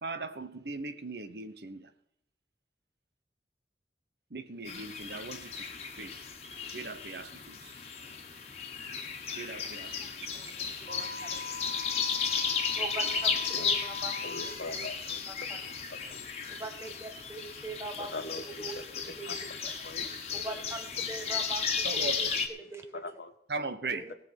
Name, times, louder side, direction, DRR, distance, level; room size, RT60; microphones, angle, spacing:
voice 1, 0.0-1.9 4.3-5.6 5.9-6.2 6.7-7.8 9.3-10.1 10.4-10.5 21.8-22.3 23.5-24.1, right 3 dB, 70° right, 1.1 m, -39 dB
sound 1, 4.6-22.5, left 6 dB, 35° left, 1.6 m, -34 dB
voice 2, 10.8-12.2 12.7-14.8 15.3-15.6 16.5-18.1 18.4-19.3 19.6-21.6 22.0-22.4 22.7-22.8 23.9-24.1, right 2 dB, 15° right, 1.9 m, -42 dB
Wind instrument woodwind instrument, 10.9-14.6, left 4 dB, 90° right, 3.4 m, -42 dB
voice 3, 14.2-15.2 15.6-15.7 16.1-16.3 18.0-18.4 18.7-18.8 19.2-19.4 19.8-20.0 22.9-23.3, left 3 dB, 70° left, 1.3 m, -41 dB
19.5 x 6.8 x 6.0 m
head